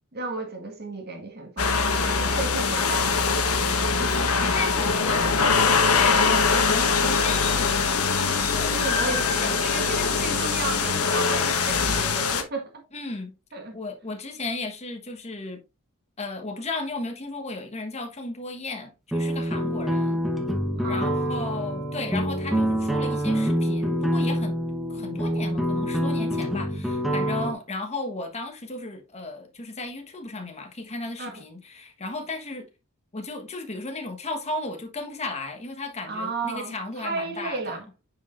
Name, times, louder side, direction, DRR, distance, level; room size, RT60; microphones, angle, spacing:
voice 1, 0.1-4.5 8.7-12.8 13.5-13.8 20.8-21.5 31.2-31.4 36.0-37.9, right 3 dB, 45° right, 1.6 m, -34 dB
sound 1, 1.6-12.4, left 5 dB, 75° left, 1.2 m, -22 dB
voice 2, 4.2-10.2 12.9-13.3 13.7-15.6 16.2-20.2 20.8-24.6 24.9-32.7 33.1-37.8, left 2 dB, 30° left, 1.3 m, -35 dB
sound 2, 19.1-27.5, equal, ahead, 1.0 m, -26 dB
9.1 x 5.0 x 2.5 m
head